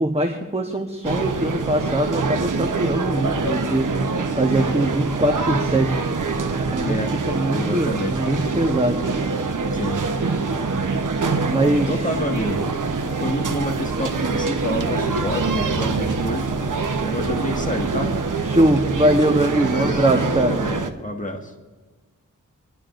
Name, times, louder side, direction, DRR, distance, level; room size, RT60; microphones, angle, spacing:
voice 1, 0.0-4.0 4.4-6.0 6.5-6.9 7.3-9.0 11.4-12.1 18.4-20.6, right 1 dB, 20° right, 3 dB, 1.1 m, -22 dB
sound 1, 1.0-20.9, right 4 dB, 70° right, 1.0 m, -24 dB
voice 2, 6.8-7.2 7.5-8.4 9.7-10.1 11.9-12.7 13.2-16.5 17.0-18.2 19.7-21.5, equal, 25° left, 1 dB, 1.8 m, -28 dB
28.0 x 11.0 x 2.6 m, 1.3 s
wide cardioid pair, 65°, 32 cm